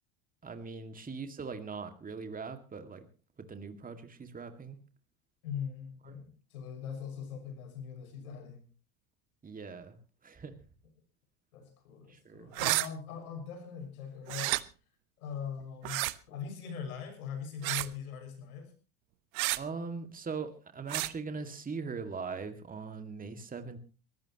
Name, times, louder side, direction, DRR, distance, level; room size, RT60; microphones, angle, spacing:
voice 1, 0.4-3.0 3.4-4.8 6.0-6.2 9.4-10.5 12.1-12.5 19.6-23.8, right 5 dB, 20° right, 7 dB, 2.2 m, -41 dB
voice 2, 5.4-8.6 11.5-14.5 15.2-16.0 16.3-18.7, left 7 dB, 85° left, 6 dB, 6.3 m, -41 dB
sound 1, 12.5-12.9 14.3-14.6 15.8-16.1 17.6-17.9 19.3-19.6 20.9-21.1, right 22 dB, 70° right, 0.9 m, -30 dB
22.5 x 15.0 x 3.0 m, 0.34 s
hypercardioid pair, 95°, 42 cm